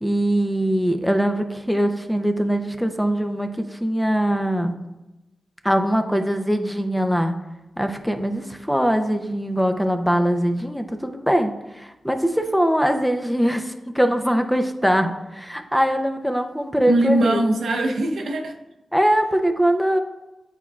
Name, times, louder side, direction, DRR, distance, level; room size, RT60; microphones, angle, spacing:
voice 1, 0.0-4.7 5.6-7.3 7.8-17.4 18.9-20.0, equal, ahead, 6 dB, 0.6 m, -22 dB
voice 2, 16.9-18.5, right 1 dB, 80° right, 3 dB, 0.8 m, -21 dB
9.2 x 4.5 x 2.4 m, 0.99 s
cardioid pair, 65°, 0 cm